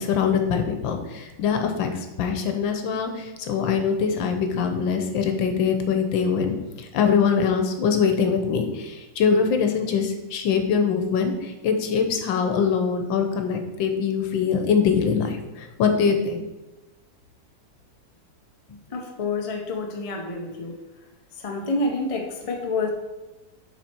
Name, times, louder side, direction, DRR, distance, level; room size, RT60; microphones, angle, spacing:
voice 1, 0.0-1.9 2.2-3.1 3.5-6.6 6.9-11.3 11.6-15.3 15.8-16.4, left 6 dB, 80° left, 5 dB, 1.5 m, -23 dB
voice 2, 18.9-20.7 21.4-22.9, left 3 dB, 55° left, 2 dB, 0.3 m, -28 dB
7.3 x 4.1 x 4.4 m, 1.1 s
omnidirectional pair, 2.1 m